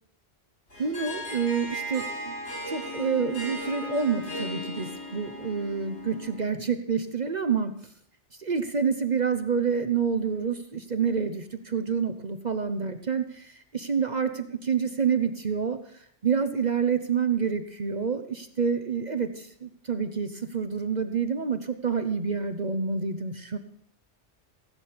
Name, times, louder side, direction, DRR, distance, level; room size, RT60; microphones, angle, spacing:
Harp, 0.7-6.5, left 1 dB, 70° left, 7.1 m, -36 dB
voice 1, 0.8-2.3 2.7-7.8 8.4-15.8 16.2-23.6, right 6 dB, 40° right, 9 dB, 0.9 m, -28 dB
17.0 x 6.2 x 8.7 m, 0.70 s
omnidirectional pair, 1.2 m